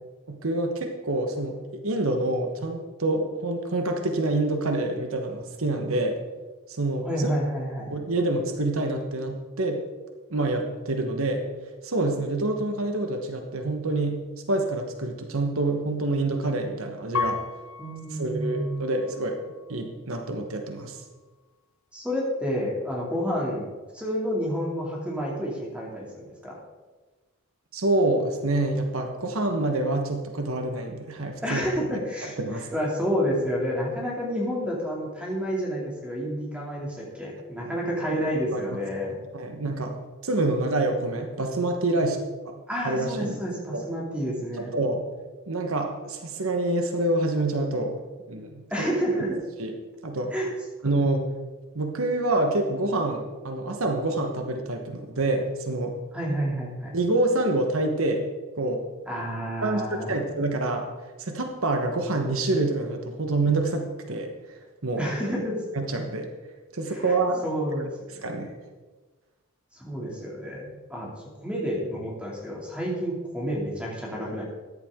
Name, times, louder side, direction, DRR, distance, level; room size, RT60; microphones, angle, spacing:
voice 1, 0.3-6.2 6.8-7.3 7.9-9.8 10.3-11.4 11.8-14.2 14.5-17.4 18.2-19.4 19.7-21.0 27.7-31.6 32.4-32.7 38.5-38.8 39.3-40.0 40.2-42.2 42.5-42.6 42.8-43.4 43.7-43.8 44.6-45.1 45.5-47.9 48.3-48.9 49.6-49.7 50.0-50.3 50.8-51.2 51.7-55.9 56.9-58.3 58.6-58.8 59.6-60.9 61.2-64.3 64.8-65.0 65.7-66.3 66.7-67.4 68.2-68.5, right 2 dB, 70° right, 4 dB, 1.2 m, -27 dB
voice 2, 7.0-8.1 17.8-19.0 21.9-23.7 23.9-26.6 31.4-39.2 42.0-42.1 42.7-44.7 48.7-49.4 50.3-50.5 56.1-57.0 59.1-60.3 65.0-65.6 66.9-67.9 68.1-68.5 69.7-74.4, equal, 5° right, -4 dB, 2.7 m, -30 dB
Piano, 17.1-19.9 20.5-21.2, left 6 dB, 70° left, 0.6 m, -35 dB
13.5 x 11.0 x 3.7 m, 1.3 s
head